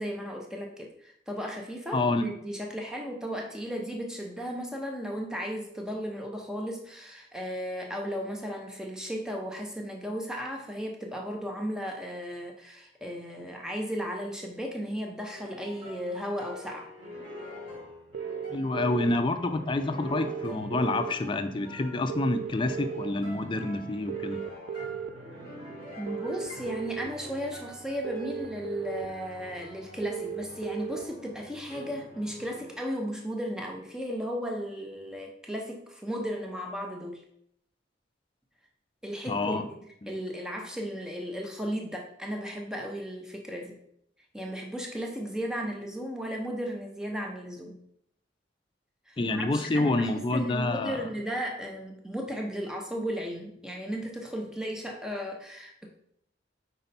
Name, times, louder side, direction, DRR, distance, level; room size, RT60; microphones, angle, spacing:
voice 1, 0.0-16.9 26.0-37.2 39.0-39.8 40.1-43.8 44.3-47.8 49.1-55.9, equal, 5° right, 1 dB, 0.7 m, -35 dB
voice 2, 1.9-2.3 18.5-24.4 39.3-39.7 40.0-40.1 49.2-51.0, left 2 dB, 25° left, 8 dB, 0.4 m, -28 dB
sound 1, 15.3-32.9, left 1 dB, 30° right, 2.3 m, -46 dB
sound 2, 18.1-19.2 20.1-21.1 22.1-23.1 24.1-25.1 26.1-27.1 28.0-29.1 30.0-31.0, right 8 dB, 70° right, 0.4 m, -35 dB
5.4 x 4.3 x 4.1 m, 0.72 s
head